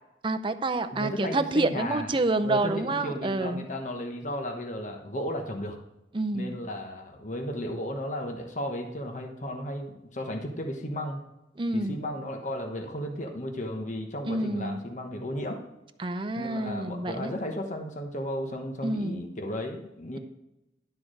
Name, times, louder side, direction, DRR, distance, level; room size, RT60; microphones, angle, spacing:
voice 1, 0.2-3.6 6.1-6.6 11.6-12.0 14.3-14.8 16.0-17.3 18.8-19.2, right 2 dB, 30° right, 7 dB, 0.6 m, -28 dB
voice 2, 0.9-2.1 2.4-5.8 6.3-11.2 11.7-15.6 16.4-20.2, left 1 dB, 45° left, 3 dB, 1.2 m, -34 dB
12.0 x 4.7 x 6.4 m, 0.91 s
head